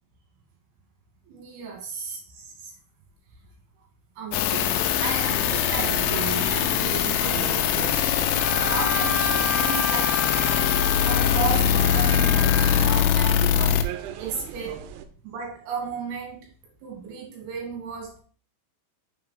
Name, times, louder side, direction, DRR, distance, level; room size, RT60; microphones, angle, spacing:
voice 1, 1.3-2.7 4.2-8.0 8.5-10.8 11.0-13.9 14.2-14.9 15.2-16.5 16.8-18.2, right 6 dB, 65° right, 0 dB, 3.2 m, -34 dB
sound 1, 4.3-13.8, left 10 dB, 90° left, 3.1 m, -22 dB
sound 2, 4.5-15.1, right 9 dB, 85° right, 2.9 m, -37 dB
Wind instrument woodwind instrument, 8.4-13.0, left 1 dB, 25° right, 1.6 m, -31 dB
7.0 x 4.7 x 3.5 m, 0.39 s
omnidirectional pair, 5.5 m